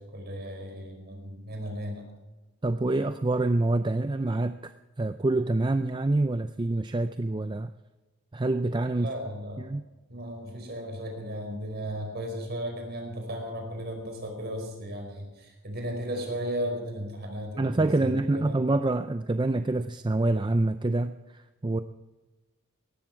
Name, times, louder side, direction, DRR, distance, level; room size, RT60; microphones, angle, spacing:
voice 1, 0.0-2.1 8.9-9.6 10.1-18.6, equal, 45° right, 3 dB, 4.9 m, -35 dB
voice 2, 2.6-7.7 8.3-9.1 9.6-9.8 17.6-21.8, right 2 dB, 20° right, 10 dB, 0.4 m, -26 dB
18.0 x 13.5 x 4.7 m, 1.1 s
head